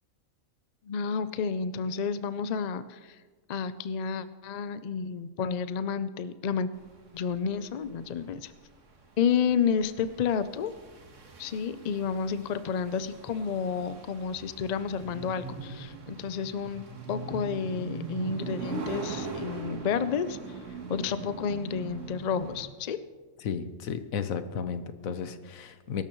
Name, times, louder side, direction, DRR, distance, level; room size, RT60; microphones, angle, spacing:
voice 1, 0.9-3.2 3.5-6.7 7.1-8.5 9.2-10.7 11.4-20.4 20.9-23.0, left 6 dB, 60° left, 13 dB, 0.4 m, -30 dB
sound 1, 6.8-22.7, right 4 dB, 65° right, 1.8 m, -41 dB
voice 2, 23.4-26.0, left 7 dB, 80° left, 11 dB, 1.3 m, -33 dB
23.0 x 12.5 x 3.1 m, 1.4 s
omnidirectional pair, 1.4 m